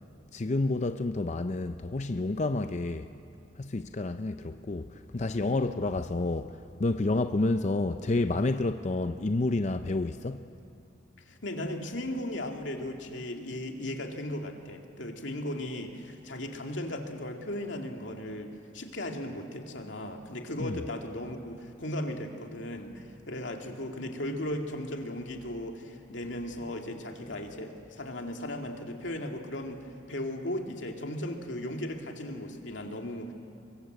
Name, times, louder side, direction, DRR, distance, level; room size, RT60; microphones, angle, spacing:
voice 1, 0.3-3.1 3.6-10.5 20.6-20.8, left 2 dB, 40° left, 0.6 m, -29 dB
voice 2, 11.3-33.3, left 1 dB, 85° left, 2.4 m, -36 dB
25.5 x 23.0 x 8.1 m
head